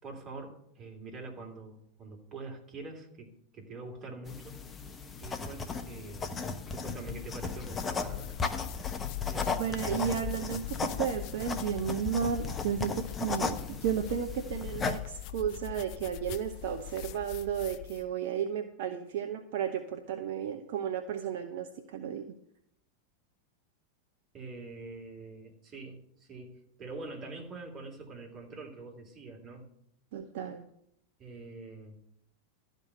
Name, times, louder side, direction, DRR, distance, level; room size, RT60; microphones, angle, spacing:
voice 1, 0.0-4.6 5.2-6.3 6.6-8.4 9.3-9.6 24.3-29.7 31.2-32.0, right 3 dB, 25° right, 0 dB, 3.0 m, -45 dB
sound 1, 4.3-15.0, left 5 dB, 20° left, 1.0 m, -36 dB
sound 2, 7.2-18.1, left 14 dB, 45° left, 0.4 m, -42 dB
voice 2, 9.5-22.4 30.1-30.7, right 8 dB, 50° right, 7 dB, 0.8 m, -33 dB
12.5 x 5.3 x 8.8 m, 0.74 s
figure-of-eight pair, 90°, 0 cm